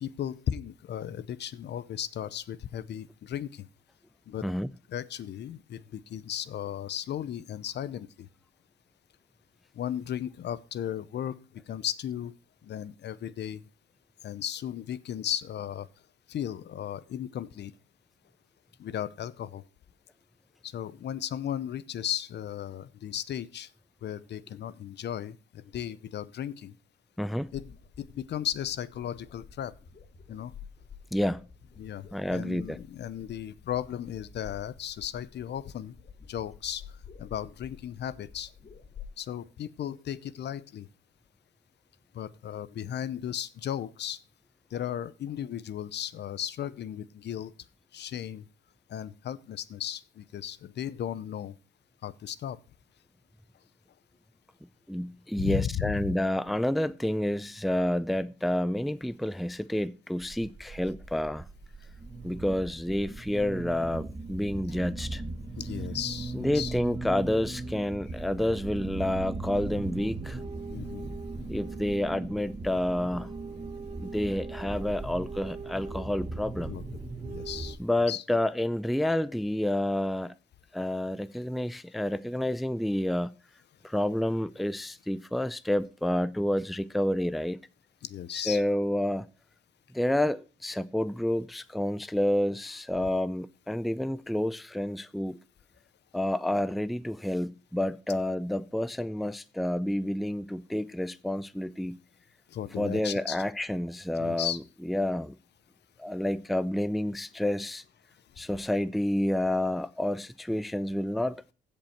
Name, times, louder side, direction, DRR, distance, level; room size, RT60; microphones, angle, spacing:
voice 1, 0.0-3.7 4.3-4.5 4.9-8.3 9.7-11.4 11.7-12.3 12.6-13.6 14.2-15.9 16.3-17.7 18.8-19.6 20.6-23.7 24.0-26.7 27.5-29.7 30.3-30.5 31.8-35.9 36.3-36.8 37.2-38.5 39.2-40.9 42.1-44.2 44.7-47.5 47.9-48.4 48.9-51.5 52.0-52.6 55.4-56.1 65.6-66.7 70.7-71.1 76.7-76.8 77.3-77.8 78.1-78.2 88.0-88.6 102.5-103.4 104.2-104.6, left 10 dB, 60° left, 0.7 m, -35 dB
voice 2, 27.2-27.5 31.1-31.4 32.1-32.8 54.9-61.5 62.2-65.2 66.3-70.4 71.5-73.3 74.0-76.8 77.8-80.3 80.7-83.3 83.8-87.6 88.3-89.3 89.9-95.4 96.1-102.0 102.8-104.6 104.8-105.3 106.0-107.8 108.4-111.4, left 1 dB, ahead, 0.4 m, -29 dB
sound 1, 27.4-39.1, left 6 dB, 40° left, 2.2 m, -50 dB
sound 2, 60.2-77.8, right 3 dB, 25° right, 1.3 m, -38 dB
15.5 x 5.4 x 4.4 m
cardioid pair, 90°, 20 cm